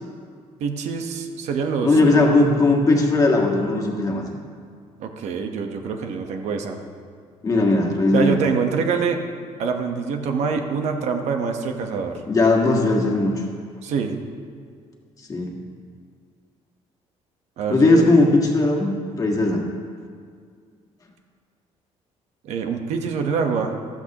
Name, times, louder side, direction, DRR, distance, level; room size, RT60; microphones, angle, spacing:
voice 1, 0.6-2.2 5.0-6.8 8.1-9.2 9.6-12.2 13.8-14.1 17.6-18.0 22.4-23.7, right 5 dB, 70° right, 4 dB, 1.2 m, -25 dB
voice 2, 1.8-4.2 7.4-8.4 12.3-13.4 15.3-15.5 17.7-19.6, left 2 dB, 30° left, 1 dB, 1.7 m, -18 dB
14.5 x 13.0 x 3.0 m, 2.1 s
cardioid pair, 125°, 12 cm